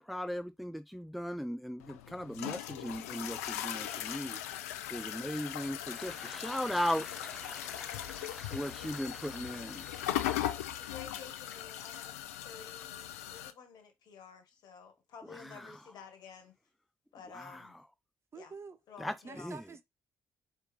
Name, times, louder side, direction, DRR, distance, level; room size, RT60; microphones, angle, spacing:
voice 1, 0.0-4.4 4.9-10.6 10.8-10.9 15.4-15.7 17.3-17.7 19.0-19.6, equal, ahead, 0.4 m, -38 dB
sound 1, 1.8-13.5, left 12 dB, 85° left, 0.4 m, -39 dB
voice 2, 10.8-12.2 12.4-16.5 17.1-17.8 18.3-18.5 18.9-19.5, left 6 dB, 60° left, 1.5 m, -52 dB
voice 3, 18.3-18.8 19.2-19.8, right 4 dB, 35° right, 0.7 m, -47 dB
4.8 x 3.2 x 3.2 m
hypercardioid pair, 50°, 8 cm